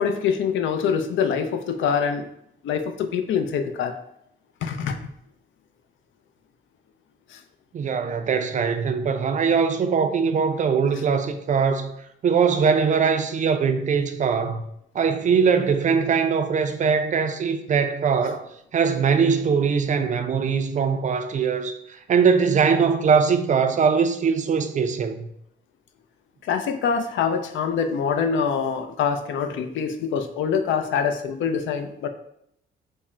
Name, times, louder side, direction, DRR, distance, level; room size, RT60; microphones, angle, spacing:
voice 1, 0.0-2.3 2.6-3.9 4.6-5.0 7.3-7.4 26.4-32.1, left 6 dB, 75° left, 0.5 m, -24 dB
voice 2, 7.7-11.9 12.2-14.6 14.9-18.5 18.7-25.3, right 6 dB, 40° right, 0.4 m, -21 dB
3.5 x 2.1 x 4.2 m
cardioid pair, 90°, 20 cm